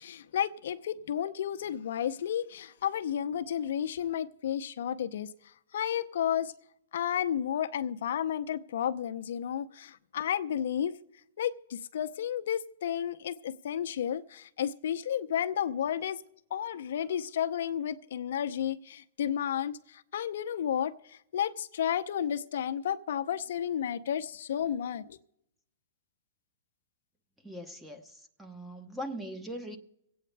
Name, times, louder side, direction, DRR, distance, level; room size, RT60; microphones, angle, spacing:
voice 1, 0.0-5.3 5.7-6.5 6.9-11.0 11.4-16.2 16.5-19.8 20.1-20.9 21.3-25.2, left 9 dB, 70° left, 0.7 m, -32 dB
voice 2, 27.4-29.8, equal, 5° right, 1.0 m, -41 dB
24.5 x 8.7 x 3.3 m
hypercardioid pair, 145°, 0 cm